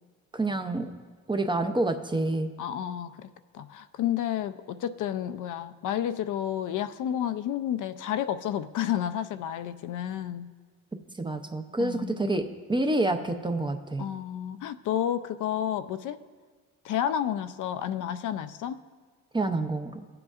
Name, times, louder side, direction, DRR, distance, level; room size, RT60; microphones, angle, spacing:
voice 1, 0.3-0.9 1.3-2.5 11.2-12.4 12.7-14.1 19.3-20.0, right 2 dB, 15° right, 7 dB, 0.5 m, -28 dB
voice 2, 2.6-3.3 3.5-10.5 11.8-12.4 14.0-16.2 16.8-18.8, left 10 dB, 65° left, 11 dB, 0.5 m, -31 dB
17.5 x 7.8 x 2.4 m, 1.5 s
cardioid pair, 105°, 33 cm